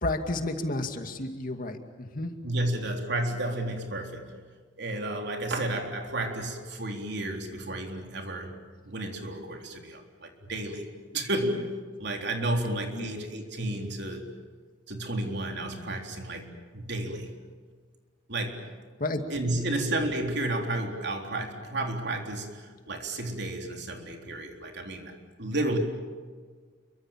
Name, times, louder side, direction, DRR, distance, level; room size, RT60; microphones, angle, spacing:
voice 1, 0.0-2.3 12.9-13.1 19.0-19.2, left 2 dB, 45° left, 6 dB, 2.3 m, -31 dB
voice 2, 2.4-4.3 4.8-8.5 8.9-10.9 11.1-11.7 12.0-14.3 14.9-17.3 18.3-18.7 19.3-25.1 25.4-25.8, right 1 dB, 60° right, 3 dB, 3.8 m, -32 dB
29.0 x 24.0 x 7.5 m, 1.5 s
head